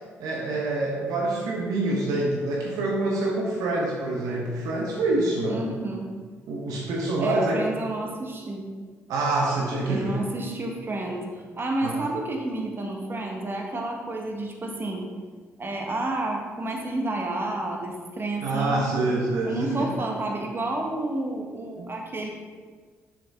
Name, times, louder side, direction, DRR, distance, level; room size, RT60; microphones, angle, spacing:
voice 1, 0.0-5.6 6.5-7.7 9.1-10.2 11.8-12.0 18.4-19.9 21.8-21.9, right 2 dB, 70° right, -2 dB, 1.0 m, -26 dB
voice 2, 5.5-6.1 7.2-8.7 9.9-11.3 11.6-15.1 15.6-18.9 19.4-22.3, right 2 dB, 35° right, 1 dB, 1.4 m, -30 dB
6.7 x 6.4 x 3.6 m, 1.5 s
hypercardioid pair, 45°, 6 cm